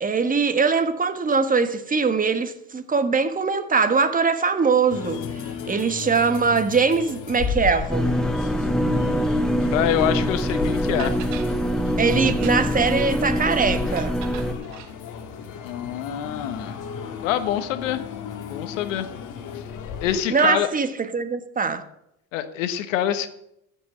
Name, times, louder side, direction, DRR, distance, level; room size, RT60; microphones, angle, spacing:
voice 1, 0.0-5.2 5.7-8.1 12.0-14.1 20.3-21.8, right 5 dB, 20° right, 1.5 m, -22 dB
sound 1, 4.9-20.2, left 7 dB, 55° left, 1.9 m, -35 dB
sound 2, 7.9-14.5, equal, ahead, 1.3 m, -24 dB
voice 2, 8.8-11.1 15.6-16.8 17.2-18.0 18.4-19.1 19.5-19.6 20.0-20.7 22.3-23.3, left 11 dB, 90° left, 1.3 m, -26 dB
sound 3, 10.5-10.6 11.0-11.5 12.3-12.9 13.9-14.9, right 10 dB, 85° right, 1.6 m, -40 dB
14.0 x 6.2 x 7.7 m
supercardioid pair, 95°, 37 cm